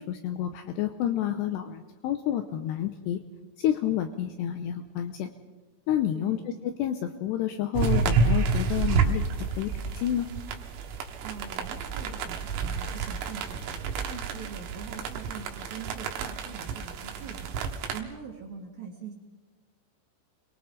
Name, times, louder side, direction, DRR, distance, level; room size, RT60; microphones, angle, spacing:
voice 1, 0.0-3.2 3.6-5.3 5.9-6.4 6.8-9.2 9.6-10.3, left 11 dB, 75° left, 7 dB, 2.6 m, -29 dB
voice 2, 6.1-6.5 11.2-19.1, right 6 dB, 55° right, -1 dB, 3.5 m, -43 dB
sound 1, 7.7-18.0, right 5 dB, 75° right, 3.7 m, -29 dB
29.0 x 22.5 x 3.9 m, 1.2 s
omnidirectional pair, 5.6 m